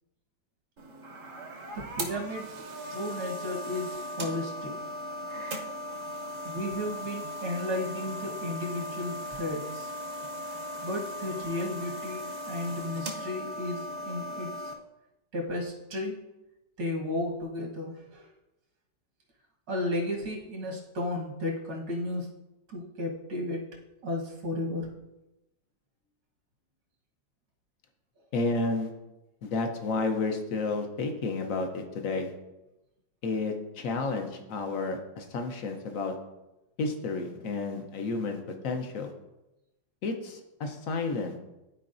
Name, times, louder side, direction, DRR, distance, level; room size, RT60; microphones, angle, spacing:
sound 1, 0.8-14.7, equal, 50° right, 1.0 m, -38 dB
voice 1, 1.7-2.6 2.9-4.7 6.4-9.9 10.8-14.7 15.3-16.3 16.8-18.3 19.7-22.3 22.7-23.6 24.0-24.9, left 1 dB, 75° right, -1 dB, 2.1 m, -34 dB
voice 2, 28.3-28.9 29.4-32.3 33.2-36.1 36.8-39.1 40.0-41.4, left 3 dB, 55° left, 4 dB, 1.1 m, -31 dB
12.5 x 4.6 x 2.6 m, 0.97 s
omnidirectional pair, 1.9 m